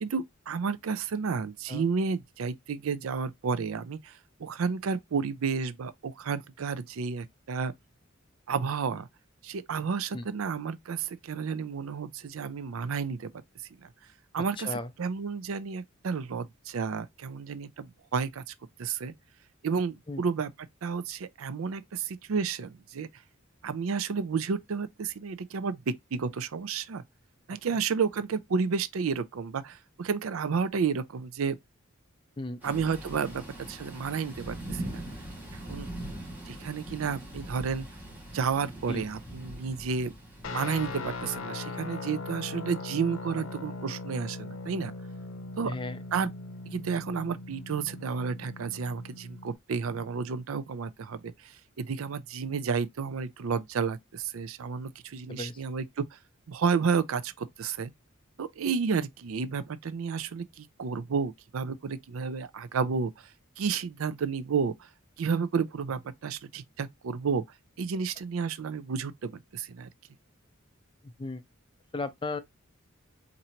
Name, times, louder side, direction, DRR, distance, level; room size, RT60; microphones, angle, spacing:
voice 1, 0.0-7.7 8.5-9.1 9.4-13.3 13.8-13.9 14.3-19.1 19.6-20.5 20.8-23.1 23.6-27.0 27.5-31.6 32.6-35.0 35.7-35.9 36.5-37.9 38.3-40.1 40.5-44.9 45.6-45.7 46.1-46.3 46.7-56.2 56.5-57.9 58.4-63.3 63.6-64.9 65.2-67.4 67.8-69.9, right 5 dB, 90° right, 0.4 m, -31 dB
voice 2, 14.6-14.9 20.1-20.2 32.4-32.6 38.9-39.1 45.6-46.0 55.3-55.6 71.0-71.4 71.9-72.4, left 2 dB, 25° left, 0.4 m, -35 dB
Thunder / Rain, 32.6-41.4, right 1 dB, 10° right, 1.7 m, -42 dB
Guitar, 40.4-49.6, left 3 dB, 75° left, 0.6 m, -40 dB
4.3 x 2.6 x 2.7 m
head